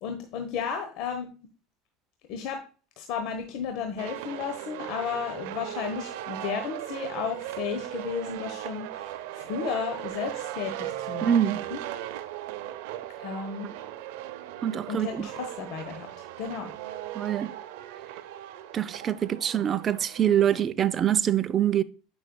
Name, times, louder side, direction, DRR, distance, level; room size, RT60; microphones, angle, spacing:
voice 1, 0.0-1.3 2.3-2.6 3.0-11.4 11.7-11.8 13.2-13.7 14.9-16.7, left 7 dB, 65° left, 1.0 m, -33 dB
sound 1, 4.0-20.6, right 13 dB, 75° right, 0.6 m, -38 dB
voice 2, 11.2-11.6 14.6-15.3 17.1-17.5 18.7-21.8, right 10 dB, 35° right, 0.5 m, -25 dB
9.4 x 5.4 x 2.2 m
supercardioid pair, 115°, 0 cm